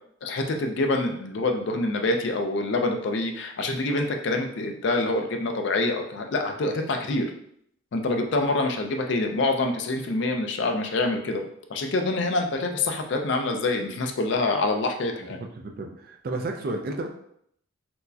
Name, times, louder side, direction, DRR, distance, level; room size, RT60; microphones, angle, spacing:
voice 1, 0.2-7.3 7.9-11.4 11.7-15.4, left 2 dB, 60° left, 4 dB, 0.4 m, -26 dB
voice 2, 15.2-17.1, right 2 dB, 45° right, 4 dB, 0.4 m, -32 dB
4.4 x 2.1 x 2.7 m, 0.71 s
head